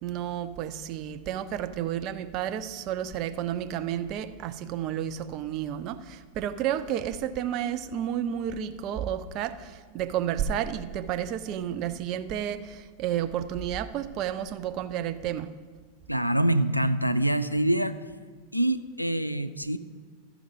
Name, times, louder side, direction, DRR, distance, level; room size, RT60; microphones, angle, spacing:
voice 1, 0.0-15.5, right 10 dB, 40° right, 0.5 m, -31 dB
voice 2, 16.1-17.9 18.5-19.8, right 1 dB, 90° left, 0.3 m, -25 dB
13.5 x 4.9 x 5.2 m
figure-of-eight pair, 90°, 0 cm